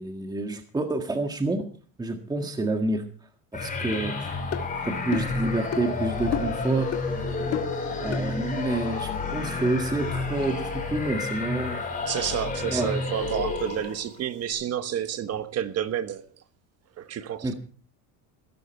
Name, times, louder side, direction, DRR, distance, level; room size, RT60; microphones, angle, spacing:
voice 1, 0.0-1.6 2.0-3.0 3.5-4.3 4.8-6.9 8.0-11.8 12.7-12.9 17.4-17.5, right 2 dB, 10° right, 1.6 m, -28 dB
sound 1, 3.5-14.1, left 3 dB, 20° left, 5.3 m, -30 dB
sound 2, 3.9-4.0 4.5-4.7 5.1-5.4 5.7-5.9 6.3-6.6 6.9-7.1 7.5-7.8 8.1-8.3, left 9 dB, 40° left, 1.9 m, -31 dB
voice 2, 12.1-16.2 17.0-17.5, right 10 dB, 40° right, 1.3 m, -30 dB
17.0 x 13.5 x 4.5 m
cardioid pair, 145°, 38 cm